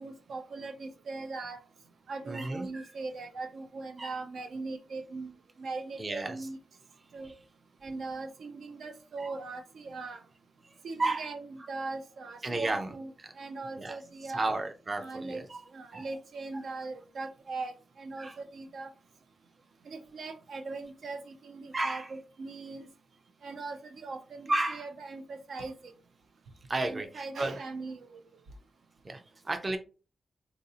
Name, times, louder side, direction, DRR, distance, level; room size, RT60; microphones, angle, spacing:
voice 1, 0.0-1.6 2.1-5.3 5.6-6.6 7.1-7.3 7.8-10.2 10.8-13.1 13.4-14.5 15.0-15.4 15.7-18.9 19.9-22.9 23.4-25.9 26.8-28.2, right 3 dB, 90° right, 5 dB, 0.6 m, -40 dB
voice 2, 2.3-2.9 4.0-4.2 6.0-6.4 9.2-9.3 11.0-11.3 12.4-12.9 13.2-13.3 13.8-14.0 14.3-15.6 15.9-16.1 18.2-18.4 21.7-22.1 24.5-24.8 26.7-27.6 29.0-29.8, right 2 dB, 25° right, 6 dB, 0.4 m, -32 dB
3.9 x 2.6 x 2.7 m, 0.34 s
wide cardioid pair, 175°, 0 cm